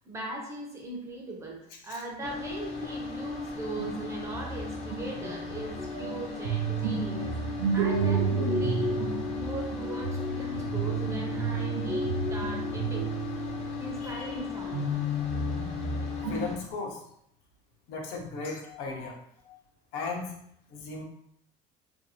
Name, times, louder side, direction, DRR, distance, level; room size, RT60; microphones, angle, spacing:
voice 1, 0.0-7.3 7.7-9.0 9.3-13.2 13.8-14.9, right 1 dB, 20° right, 0 dB, 0.5 m, -39 dB
sound 1, 2.2-16.6, left 6 dB, 40° left, 0.4 m, -37 dB
sound 2, 3.8-14.2 14.7-16.7, right 3 dB, 85° right, 0.6 m, -31 dB
voice 2, 16.3-17.0 17.9-19.2 19.5-19.6 19.9-20.3 20.7-21.0, left 4 dB, 75° left, 0 dB, 0.7 m, -36 dB
2.6 x 2.3 x 2.7 m, 0.71 s
cardioid pair, 150°, 17 cm